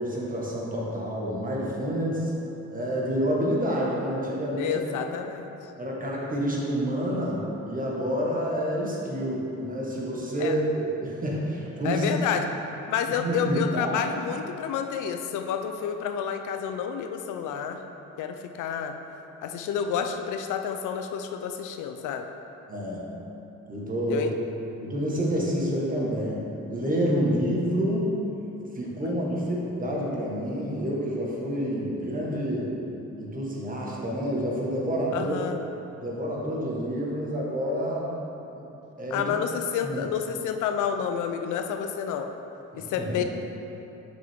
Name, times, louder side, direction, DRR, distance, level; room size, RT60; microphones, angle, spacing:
voice 1, 0.0-2.3 2.7-4.9 5.8-12.1 13.2-14.1 22.7-23.0 23.7-24.3 24.8-28.2 28.7-32.8 33.2-35.4 36.0-38.1 38.5-38.6 39.0-39.3 39.8-40.0 42.7-43.2, equal, 30° right, -4 dB, 1.4 m, -28 dB
voice 2, 4.6-5.5 10.4-10.5 11.8-12.5 12.9-17.8 18.2-18.9 19.4-22.3 24.1-24.3 35.1-35.6 39.1-42.3 42.7-43.2, left 7 dB, 80° left, 6 dB, 0.5 m, -29 dB
6.2 x 5.9 x 3.6 m, 3.0 s
cardioid pair, 90°, 30 cm